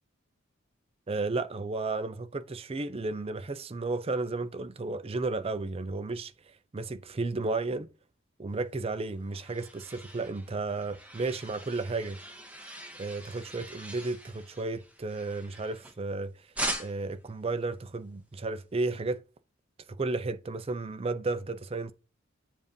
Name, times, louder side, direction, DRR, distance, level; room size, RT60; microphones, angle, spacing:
voice 1, 1.1-7.9 8.4-12.2 13.0-16.5 16.8-19.2 19.9-21.9, right 3 dB, 30° right, 0.4 m, -33 dB
sound 1, 9.0-16.1 16.5-17.2, right 1 dB, 5° right, 0.9 m, -41 dB
7.5 x 2.6 x 5.1 m
head